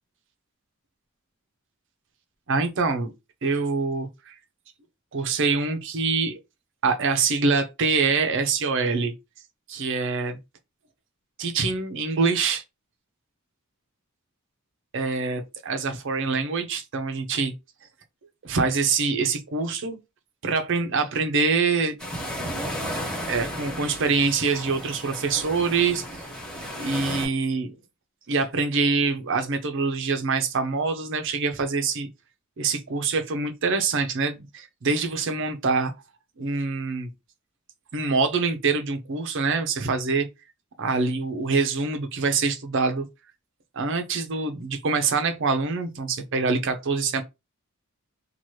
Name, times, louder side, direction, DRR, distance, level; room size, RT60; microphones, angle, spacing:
voice 1, 2.5-3.1 3.4-4.3 5.1-6.4 6.8-9.1 9.7-10.4 11.4-12.6 14.9-17.5 18.4-20.0 20.4-21.9 23.3-26.3 26.5-27.7 28.3-32.1 32.6-35.9 36.4-37.1 37.9-40.3 40.8-43.1 43.7-47.2, right 4 dB, 55° right, 0.6 m, -25 dB
sound 1, 22.0-27.3, equal, 5° left, 1.7 m, -34 dB
2.9 x 2.2 x 3.0 m
head